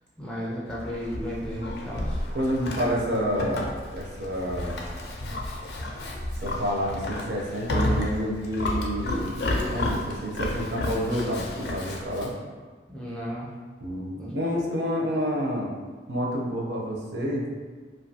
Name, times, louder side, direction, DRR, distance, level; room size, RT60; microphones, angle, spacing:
voice 1, 0.2-2.2 12.9-13.5 14.2-14.3, equal, 5° left, -6 dB, 0.4 m, -34 dB
Livestock farm animals working animals, 0.7-12.3, left 1 dB, 70° left, 0.4 m, -31 dB
voice 2, 2.3-4.8 6.4-12.3 13.8-15.7 16.1-17.5, equal, 75° right, -2 dB, 0.5 m, -29 dB
2.5 x 2.3 x 2.7 m, 1.4 s
head